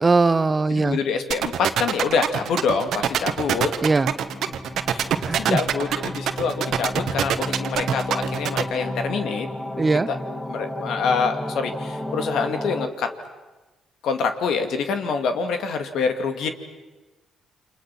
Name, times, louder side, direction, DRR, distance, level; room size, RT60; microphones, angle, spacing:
voice 1, 0.0-1.0 3.8-4.1 5.2-5.6 9.8-10.1, right 3 dB, 25° right, 14 dB, 0.8 m, -20 dB
voice 2, 0.7-3.7 4.9-9.5 10.1-10.2 10.5-13.1 14.0-16.5, left 5 dB, 75° left, 6 dB, 2.4 m, -26 dB
sound 1, 1.3-8.6, right 10 dB, 70° right, 1.4 m, -23 dB
sound 2, 2.8-12.9, left 1 dB, 15° left, 2.3 m, -33 dB
29.5 x 27.0 x 6.0 m, 1.2 s
cardioid pair, 90°, 0 cm